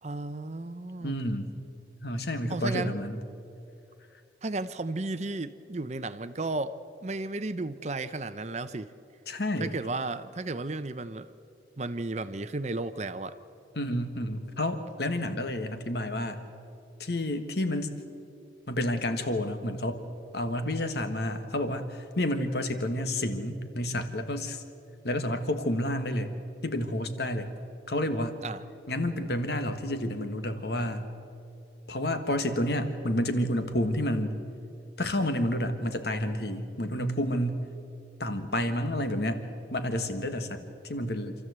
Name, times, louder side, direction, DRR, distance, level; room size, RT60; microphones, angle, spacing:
voice 1, 0.0-1.2 2.5-2.9 4.4-8.9 9.6-11.3 11.8-13.4 28.4-28.6, right 2 dB, 35° right, 12 dB, 0.7 m, -34 dB
voice 2, 1.0-1.5 2.0-3.2 9.3-9.7 13.7-16.4 17.0-17.9 18.7-20.1 20.3-24.6 25.0-26.4 26.6-27.5 27.9-28.4 28.9-31.1 31.9-34.4 35.0-37.7 38.2-41.3, left 1 dB, 60° left, 8 dB, 1.5 m, -30 dB
27.0 x 14.0 x 8.0 m, 2.7 s
head